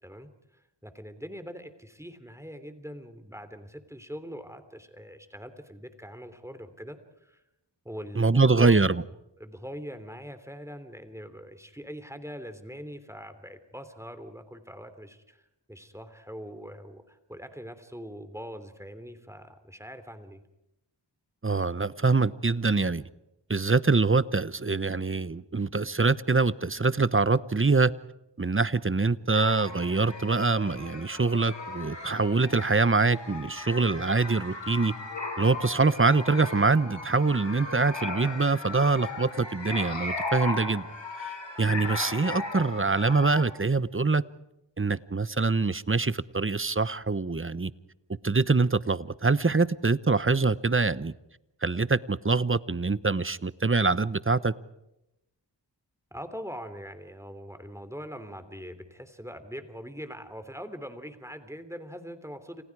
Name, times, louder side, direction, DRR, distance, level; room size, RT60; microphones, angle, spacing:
voice 1, 0.0-7.4 7.8-8.8 9.4-20.4 56.1-62.6, equal, 5° right, 10 dB, 3.2 m, -42 dB
voice 2, 8.2-9.0 21.4-23.0 23.5-27.9 28.4-34.9 35.4-40.9 41.2-44.2 44.8-47.7 48.2-51.1 51.6-54.5, right 3 dB, 30° right, 17 dB, 1.0 m, -24 dB
sound 1, 29.3-43.4, left 3 dB, 80° left, 6.1 m, -37 dB
29.5 x 27.5 x 4.8 m, 0.88 s
cardioid pair, 40°, 43 cm